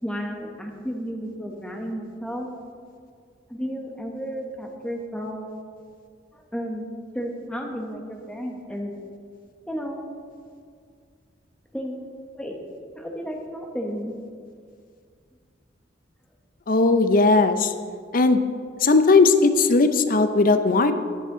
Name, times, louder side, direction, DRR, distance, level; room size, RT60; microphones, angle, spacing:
voice 1, 0.0-2.5 3.5-5.5 6.3-6.9 7.1-8.9 9.7-10.0 11.7-12.0 12.3-12.6 12.9-14.1, equal, 5° left, 1 dB, 1.1 m, -32 dB
voice 2, 16.7-17.7 18.1-18.4 18.8-20.9, left 3 dB, 50° left, 10 dB, 0.6 m, -18 dB
11.5 x 9.0 x 3.8 m, 2.2 s
head